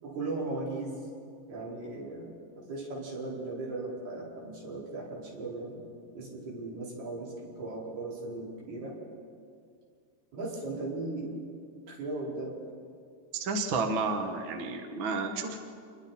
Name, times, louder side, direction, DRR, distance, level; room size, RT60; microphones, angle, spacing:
voice 1, 0.0-1.0 1.5-2.3 2.7-5.8 6.1-9.0 10.3-11.5 11.9-12.6, right 2 dB, 65° right, -6 dB, 6.8 m, -37 dB
voice 2, 13.4-15.6, right 3 dB, 80° right, 4 dB, 1.1 m, -31 dB
28.5 x 22.5 x 4.3 m, 2.3 s
omnidirectional pair, 4.9 m